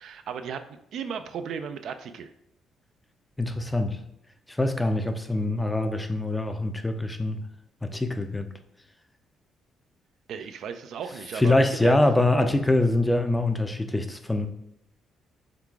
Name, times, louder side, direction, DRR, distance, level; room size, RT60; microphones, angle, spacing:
voice 1, 0.0-2.3 10.3-11.9, right 7 dB, 70° right, 9 dB, 0.3 m, -35 dB
voice 2, 3.4-4.0 4.5-7.4 7.8-8.5 11.3-14.5, left 2 dB, 10° left, 7 dB, 0.4 m, -24 dB
3.8 x 2.3 x 4.5 m, 0.81 s
cardioid pair, 90°, 0 cm